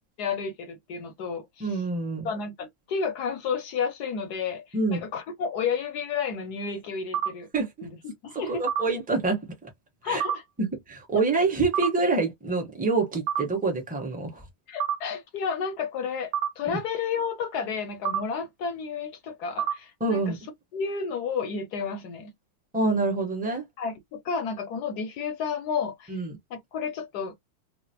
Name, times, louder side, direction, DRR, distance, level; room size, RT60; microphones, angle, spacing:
voice 1, 0.2-1.8 2.2-7.5 7.8-8.6 10.0-10.4 11.1-11.2 14.7-22.3 23.8-26.2 26.5-27.3, left 6 dB, 70° left, 1.0 m, -31 dB
voice 2, 1.6-2.3 4.7-5.0 7.5-7.9 8.3-9.7 10.0-10.2 10.6-14.4 20.0-20.4 22.7-23.6 26.1-26.4, right 3 dB, 10° right, 0.4 m, -26 dB
sound 1, 7.1-7.3 8.7-8.8 10.2-10.4 11.7-11.9 13.3-13.4 14.8-14.9 16.3-16.5 18.1-18.2 19.6-19.7, right 9 dB, 70° right, 1.0 m, -25 dB
3.8 x 2.1 x 2.8 m
omnidirectional pair, 2.3 m